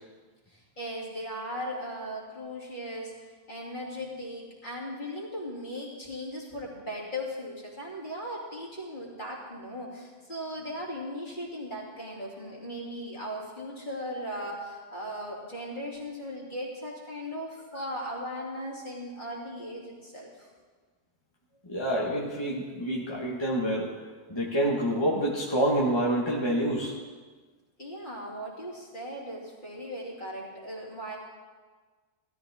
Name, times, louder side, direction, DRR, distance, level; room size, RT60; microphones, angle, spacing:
voice 1, 0.5-3.1 3.5-20.5 27.8-31.2, equal, 45° left, -4 dB, 3.1 m, -38 dB
voice 2, 21.7-24.0 24.3-26.9, right 1 dB, 25° left, -4 dB, 1.5 m, -27 dB
17.0 x 13.0 x 3.6 m, 1.4 s
omnidirectional pair, 1.2 m